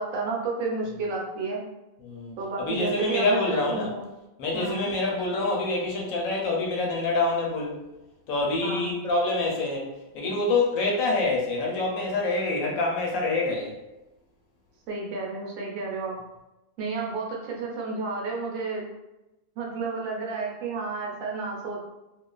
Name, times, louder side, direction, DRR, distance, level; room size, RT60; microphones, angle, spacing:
voice 1, 0.0-1.6 2.4-4.1 4.5-4.9 8.6-9.0 14.9-16.2 16.8-18.9 19.6-21.8, right 4 dB, 75° right, -1 dB, 0.9 m, -31 dB
voice 2, 2.0-3.9 4.4-7.8 8.3-9.9 10.1-13.7, left 2 dB, 75° left, -1 dB, 1.0 m, -26 dB
2.4 x 2.3 x 2.2 m, 0.98 s
omnidirectional pair, 1.5 m